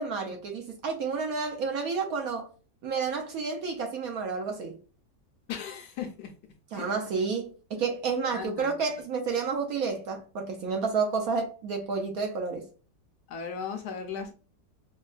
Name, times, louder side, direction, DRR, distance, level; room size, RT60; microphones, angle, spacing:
voice 1, 0.0-2.5 2.8-4.7 6.7-12.6, right 5 dB, 65° right, 0.9 m, -30 dB
voice 2, 5.5-6.3 6.7-6.9 8.3-8.8 13.3-14.3, left 7 dB, 70° left, 1.0 m, -36 dB
5.2 x 2.2 x 2.3 m
omnidirectional pair, 1.9 m